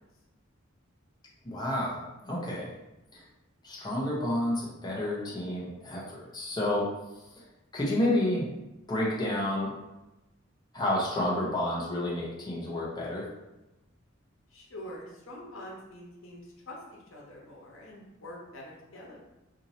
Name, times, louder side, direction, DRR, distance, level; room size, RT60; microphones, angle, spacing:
voice 1, 1.4-2.7 3.1-3.2 3.6-6.9 7.7-9.7 10.7-13.2, left 1 dB, 20° left, -5 dB, 0.7 m, -30 dB
voice 2, 14.5-19.2, left 1 dB, 80° left, -2 dB, 0.9 m, -45 dB
2.7 x 2.6 x 4.2 m, 0.99 s
head